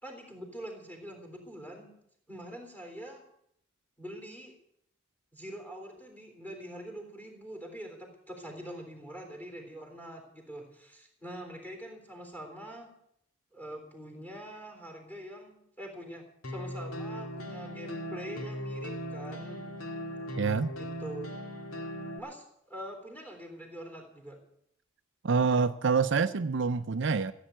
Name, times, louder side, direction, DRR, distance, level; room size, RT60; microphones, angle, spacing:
voice 1, 0.0-1.9 2.3-3.2 4.0-4.5 5.3-12.9 13.5-19.6 20.7-21.3 22.2-24.4, equal, 10° left, 3.5 m, -44 dB
sound 1, 16.4-22.2, equal, 90° left, 2.0 m, -38 dB
voice 2, 20.4-20.7 25.2-27.3, right 5 dB, 60° right, 0.5 m, -26 dB
15.0 x 8.4 x 9.0 m
head